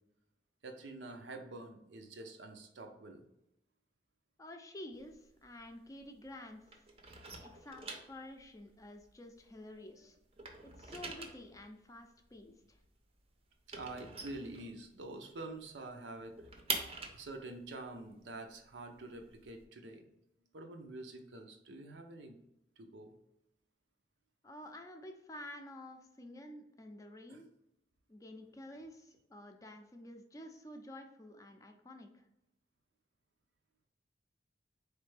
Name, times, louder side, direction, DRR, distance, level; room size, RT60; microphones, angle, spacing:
voice 1, 0.6-3.2 13.7-16.3 16.8-20.1 20.5-22.4 22.8-23.2 27.3-27.4, right 2 dB, 90° right, 4 dB, 0.6 m, -47 dB
voice 2, 4.4-6.6 7.4-10.2 10.8-12.8 24.4-27.5 28.1-32.3, left 1 dB, 20° left, 5 dB, 0.4 m, -50 dB
sound 1, 4.9-6.4 6.7-9.9 10.2-15.2 15.5-15.6 15.9-19.6, right 4 dB, 35° right, 0.6 m, -45 dB
4.2 x 3.3 x 3.2 m, 0.86 s
head